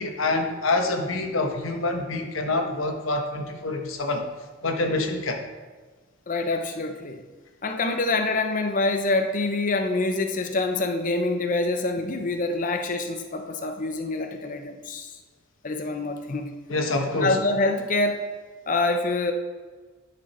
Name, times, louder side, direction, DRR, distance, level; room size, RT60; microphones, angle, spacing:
voice 1, 0.0-4.2 4.6-5.4 16.7-17.4, left 2 dB, 85° left, 4 dB, 1.2 m, -26 dB
voice 2, 6.3-7.2 7.6-15.1 15.6-16.5 17.1-18.3 18.7-19.3, left 2 dB, 40° left, 5 dB, 0.6 m, -26 dB
10.0 x 6.2 x 4.3 m, 1.4 s
head